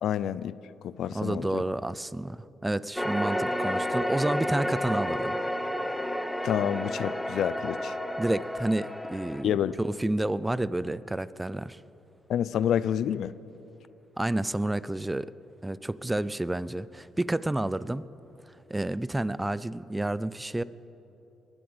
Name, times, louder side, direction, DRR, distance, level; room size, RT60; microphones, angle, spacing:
voice 1, 0.0-0.6 0.8-1.6 6.4-7.9 9.4-9.7 12.3-13.3, left 9 dB, 70° left, 17 dB, 0.4 m, -28 dB
voice 2, 1.1-5.4 8.2-11.8 14.2-15.3 15.6-18.1 18.5-20.6, right 1 dB, 10° right, 18 dB, 0.4 m, -30 dB
sound 1, 3.0-9.4, equal, 5° left, 0.9 m, -31 dB
21.0 x 7.8 x 7.9 m, 3.0 s
cardioid pair, 90°, 0 cm